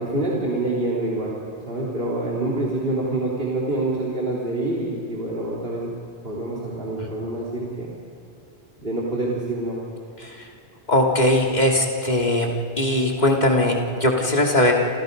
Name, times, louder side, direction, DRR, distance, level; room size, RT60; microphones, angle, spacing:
voice 1, 0.0-1.4 1.7-5.9 6.2-7.9 8.8-9.8, right 2 dB, 55° right, -5 dB, 3.5 m, -26 dB
voice 2, 10.9-12.5 12.8-14.7, left 1 dB, 40° left, 0 dB, 3.0 m, -20 dB
28.5 x 27.5 x 5.3 m, 2.8 s
omnidirectional pair, 1.1 m